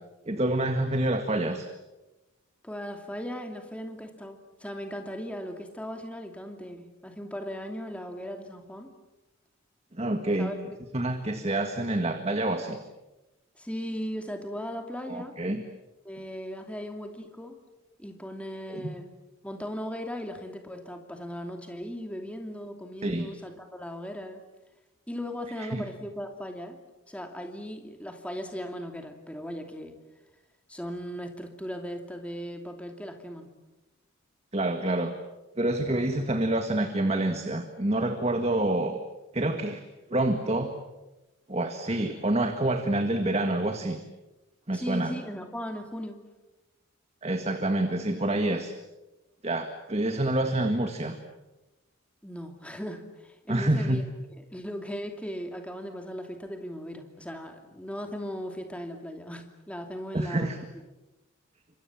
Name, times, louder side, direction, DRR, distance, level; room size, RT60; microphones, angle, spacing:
voice 1, 0.3-1.7 9.9-10.5 10.9-12.8 15.1-15.6 18.7-18.9 23.0-23.3 25.6-25.8 34.5-35.1 35.6-39.0 39.3-39.8 40.1-40.7 41.5-44.0 44.7-45.1 47.2-48.7 49.4-51.2 53.5-54.0 60.1-60.6, right 1 dB, 30° right, 6 dB, 1.8 m, -27 dB
voice 2, 2.6-8.9 10.4-10.6 13.6-15.4 16.0-17.6 18.0-19.1 19.4-24.4 25.1-26.8 27.1-29.9 30.7-33.5 44.7-46.2 52.2-54.0 54.5-60.6, equal, 5° left, 4 dB, 2.7 m, -37 dB
29.5 x 26.0 x 7.4 m, 1.1 s
head